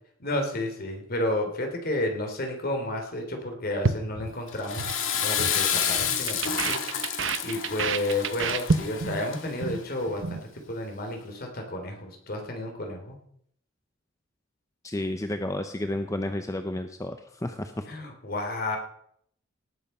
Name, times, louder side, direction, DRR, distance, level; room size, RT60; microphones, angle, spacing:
voice 1, 0.2-4.8 5.2-6.8 7.4-10.4 10.7-13.2 17.9-18.8, left 1 dB, 50° left, 3 dB, 3.2 m, -31 dB
sound 1, 3.8-5.0 5.2-5.6 5.8-9.2 9.5-9.8 10.1-10.4, right 4 dB, 70° right, 0.9 m, -28 dB
Water / Toilet flush, 4.5-9.7, left 8 dB, 80° left, 2.0 m, -29 dB
voice 2, 14.8-17.8, left 1 dB, 15° left, 7 dB, 0.7 m, -31 dB
18.5 x 8.0 x 5.5 m, 0.68 s
head